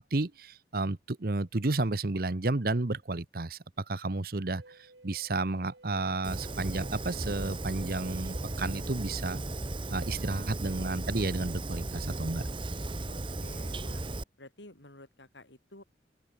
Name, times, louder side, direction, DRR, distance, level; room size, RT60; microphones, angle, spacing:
voice 1, 0.0-4.8 5.0-9.4 9.9-12.4, right 2 dB, 55° right, 1.0 m, -32 dB
sound 1, 4.5-10.0 10.8-11.5, right 2 dB, 75° right, 3.4 m, -56 dB
Fire, 6.2-14.2, right 2 dB, 30° right, 1.0 m, -36 dB
voice 2, 10.0-10.4 13.1-14.0 14.4-15.8, left 1 dB, 85° left, 7.1 m, -52 dB
open air
head